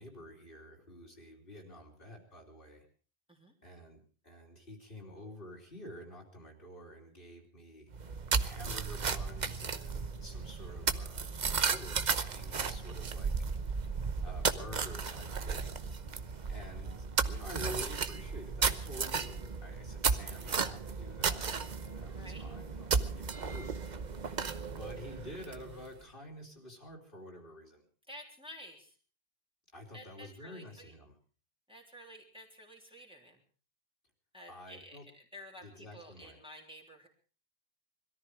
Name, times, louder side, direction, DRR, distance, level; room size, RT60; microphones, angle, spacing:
voice 1, 0.0-2.9 3.6-7.9 8.4-13.3 14.2-15.9 16.5-23.9 24.7-27.8 29.7-31.2 34.5-35.1 35.6-36.4, left 1 dB, 60° left, 0 dB, 3.5 m, -49 dB
sound 1, 7.9-25.9, right 5 dB, 45° right, 1.0 m, -34 dB
voice 2, 22.1-22.5 28.1-29.0 29.9-30.9 31.7-33.4 34.3-37.1, equal, 5° right, -1 dB, 3.4 m, -51 dB
21.5 x 14.0 x 4.8 m, 0.40 s
omnidirectional pair, 1.0 m